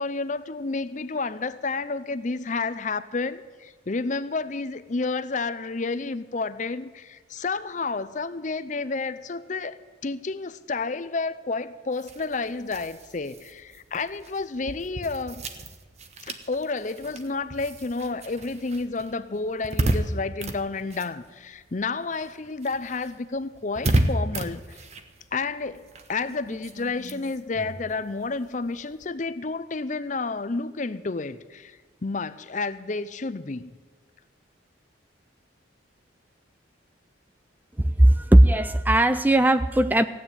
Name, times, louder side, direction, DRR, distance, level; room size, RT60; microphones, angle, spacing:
voice 1, 0.0-15.4 16.2-24.8 25.3-33.7, left 3 dB, 40° left, 14 dB, 0.6 m, -30 dB
sound 1, 11.9-21.8 22.1-29.1, right 1 dB, 35° right, 1.0 m, -33 dB
voice 2, 37.8-40.0, right 1 dB, 10° right, 12 dB, 0.3 m, -18 dB
15.5 x 9.3 x 8.0 m, 1.5 s
head